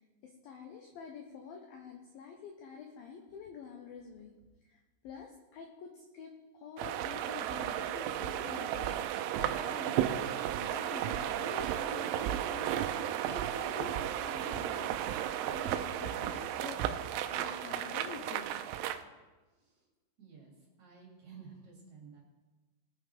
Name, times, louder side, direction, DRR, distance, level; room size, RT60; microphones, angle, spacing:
voice 1, 0.2-4.3 5.0-10.3 10.6-18.5, left 6 dB, 85° left, 2 dB, 2.1 m, -47 dB
sound 1, 6.8-19.0, right 11 dB, 85° right, 3.1 m, -34 dB
voice 2, 20.2-20.5 20.8-22.2, right 6 dB, 40° right, -3 dB, 3.5 m, -53 dB
20.5 x 9.6 x 3.4 m, 1.2 s
omnidirectional pair, 5.6 m